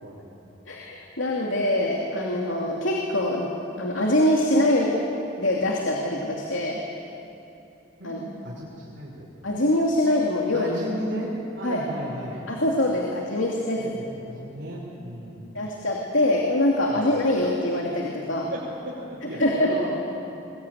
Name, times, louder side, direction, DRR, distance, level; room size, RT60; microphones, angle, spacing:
voice 1, 0.7-3.5 3.8-5.0 5.4-6.8 8.0-8.2 9.4-10.8 11.6-11.8 12.5-14.0 15.5-18.5 19.4-19.8, left 1 dB, 80° left, -1 dB, 2.7 m, -24 dB
voice 2, 8.0-9.3 10.5-12.4 13.8-15.5 16.9-17.1 18.5-19.9, right 1 dB, 70° right, -7 dB, 5.5 m, -35 dB
21.5 x 21.5 x 9.4 m, 2.8 s
head